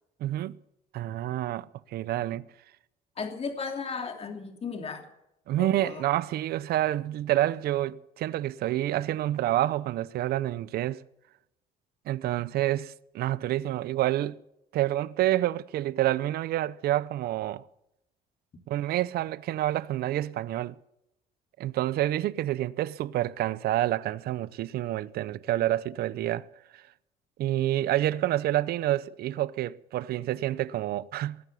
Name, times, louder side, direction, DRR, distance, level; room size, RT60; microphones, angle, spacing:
voice 1, 0.2-0.6 0.9-2.4 5.5-11.0 12.1-14.4 14.7-17.6 18.7-20.8 21.6-26.5 26.7-26.8 27.4-31.4, right 14 dB, 65° right, 0.6 m, -28 dB
voice 2, 3.2-5.0 5.6-6.0, left 5 dB, 35° left, 3.0 m, -35 dB
19.5 x 9.2 x 7.0 m
cardioid pair, 110°, 17 cm